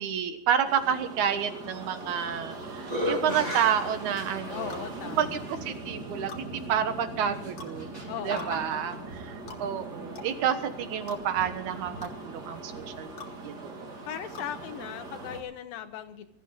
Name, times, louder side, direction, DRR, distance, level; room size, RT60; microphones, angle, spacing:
voice 1, 0.0-4.8 5.2-7.9 8.2-11.9 12.2-13.1 13.4-13.9, right 8 dB, 65° right, 9 dB, 2.5 m, -29 dB
sound 1, 0.6-15.4, right 2 dB, 30° right, 2.5 m, -41 dB
sound 2, 2.0-2.5 2.8-4.7 5.5-5.6 7.3-9.0, equal, 15° right, 1.9 m, -34 dB
sound 3, 3.5-3.7 4.7-4.9 6.3-6.4 7.6-7.8 8.4-8.5 9.5-9.6 10.1-10.3 11.1-11.2 12.0-12.1 13.2-13.3 14.3-14.5, left 4 dB, 50° left, 2.7 m, -43 dB
voice 2, 4.4-5.4 8.1-8.8 14.1-16.3, left 10 dB, 80° left, 8 dB, 2.7 m, -38 dB
21.5 x 14.0 x 3.9 m, 0.73 s
omnidirectional pair, 4.1 m